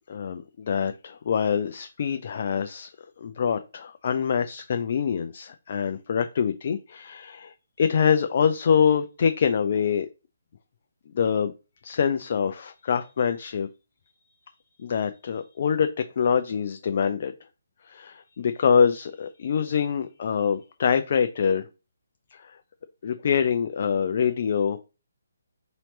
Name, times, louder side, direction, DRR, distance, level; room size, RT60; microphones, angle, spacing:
voice 1, 0.1-2.9 3.2-10.1 11.1-11.5 11.8-13.7 14.8-15.9 16.2-17.3 17.8-21.7 22.3-22.6 23.0-24.8, left 7 dB, 45° left, 0.4 m, -25 dB
4.1 x 2.9 x 3.1 m
figure-of-eight pair, 140°, 0 cm